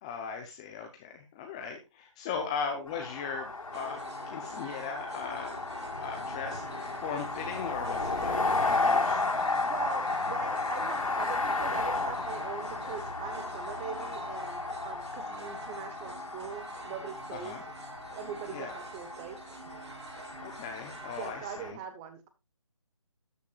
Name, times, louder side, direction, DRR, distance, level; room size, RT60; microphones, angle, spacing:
voice 1, 0.0-4.0 4.3-5.6 6.0-9.3 17.3-17.6 18.5-18.8 20.4-21.8, left 6 dB, 10° left, 4 dB, 0.7 m, -38 dB
sound 1, 2.9-21.7, left 3 dB, 85° left, 4.2 m, -33 dB
hindu ritual (Pūjā) in the temple with bells, 3.7-21.3, right 4 dB, 55° right, 3.4 m, -48 dB
voice 2, 9.6-17.5 18.1-19.4 21.2-22.3, right 8 dB, 10° right, 9 dB, 1.1 m, -41 dB
13.0 x 9.5 x 2.4 m, 0.24 s
figure-of-eight pair, 165°, 17 cm